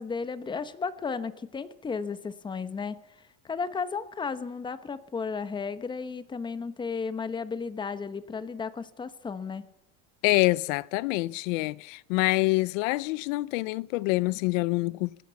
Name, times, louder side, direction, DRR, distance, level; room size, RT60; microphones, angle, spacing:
voice 1, 0.0-3.0 3.4-9.7, left 5 dB, 10° left, 1.1 m, -34 dB
voice 2, 10.2-15.1, left 22 dB, 90° left, 0.8 m, -26 dB
25.0 x 18.5 x 7.1 m
cardioid pair, 175°, 38 cm